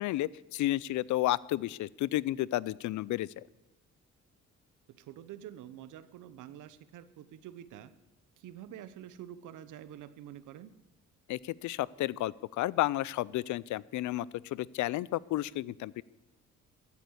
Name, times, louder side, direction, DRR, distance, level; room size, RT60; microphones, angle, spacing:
voice 1, 0.0-3.3 11.3-16.0, left 15 dB, 75° left, 23 dB, 0.5 m, -32 dB
voice 2, 4.9-7.9 8.4-10.7, right 11 dB, 85° right, 14 dB, 0.9 m, -47 dB
15.0 x 8.5 x 8.0 m, 0.99 s
cardioid pair, 90°, 30 cm